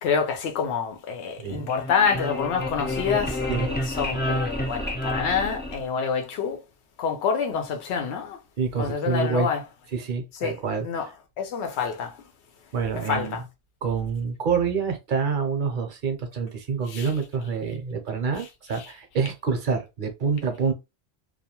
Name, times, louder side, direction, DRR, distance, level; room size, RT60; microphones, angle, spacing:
voice 1, 0.0-6.6 7.0-8.4 8.8-9.6 10.4-10.6 10.8-11.1 11.4-12.2 13.0-13.4 16.9-17.1 18.8-18.9, left 6 dB, 85° left, 0.9 m, -27 dB
voice 2, 1.4-1.7 3.5-3.7 8.6-9.5 9.9-10.9 12.7-13.4 13.8-20.7, right 5 dB, 55° right, 0.7 m, -27 dB
sound 1, 1.5-6.2, left 1 dB, 15° left, 0.4 m, -30 dB
2.3 x 2.2 x 2.8 m
omnidirectional pair, 1.1 m